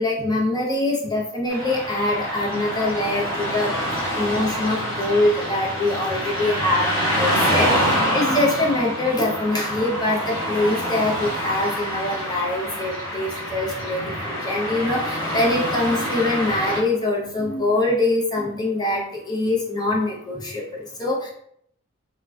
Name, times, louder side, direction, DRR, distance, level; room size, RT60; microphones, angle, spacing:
voice 1, 0.0-3.8 4.2-21.3, left 2 dB, 20° left, -3 dB, 0.6 m, -24 dB
Car passing by / Traffic noise roadway noise, 1.5-16.8, equal, 75° left, 1.2 m, -26 dB
3.2 x 2.2 x 2.4 m, 0.68 s
head